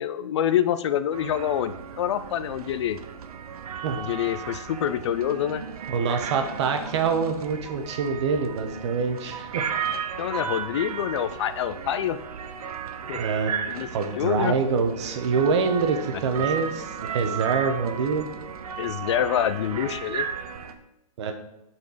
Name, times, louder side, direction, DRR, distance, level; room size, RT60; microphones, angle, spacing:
voice 1, 0.0-3.0 3.9-5.6 10.2-12.2 13.1-13.2 13.7-13.9 14.1-14.5 18.8-20.3, left 10 dB, 50° left, 13 dB, 0.4 m, -26 dB
sound 1, 1.1-20.7, right 7 dB, 75° right, 0.8 m, -35 dB
voice 2, 5.9-9.7 13.2-13.6 13.9-18.3 21.2-21.3, right 5 dB, 50° right, 6 dB, 1.0 m, -25 dB
6.6 x 4.4 x 5.0 m, 0.87 s
hypercardioid pair, 155°, 19 cm